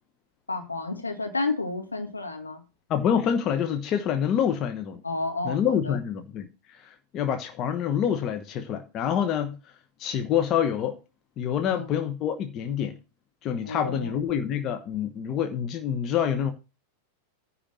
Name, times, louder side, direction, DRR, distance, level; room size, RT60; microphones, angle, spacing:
voice 1, 0.5-2.6 5.0-6.0 11.7-11.9 13.6-14.2, left 3 dB, 80° left, 2.1 m, -31 dB
voice 2, 2.9-5.0 5.4-9.6 10.0-11.0 11.4-13.0 13.4-16.5, left 8 dB, 35° left, 1.1 m, -27 dB
10.0 x 4.3 x 7.6 m
figure-of-eight pair, 90°, 0 cm